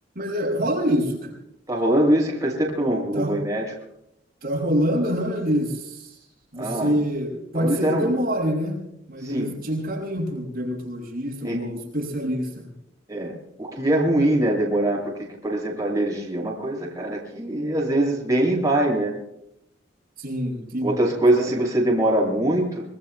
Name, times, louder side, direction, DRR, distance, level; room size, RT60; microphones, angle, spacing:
voice 1, 0.1-1.3 3.1-3.3 4.4-6.1 6.5-8.8 9.1-12.7 20.2-20.9 21.4-21.5, equal, 50° right, -2 dB, 6.5 m, -26 dB
voice 2, 1.7-3.7 6.6-6.9 7.5-8.1 9.2-9.5 11.4-11.6 13.1-13.3 13.6-15.1 15.4-19.1 20.8-22.8, right 1 dB, 20° right, -3 dB, 6.6 m, -23 dB
26.5 x 23.5 x 2.2 m, 0.80 s
head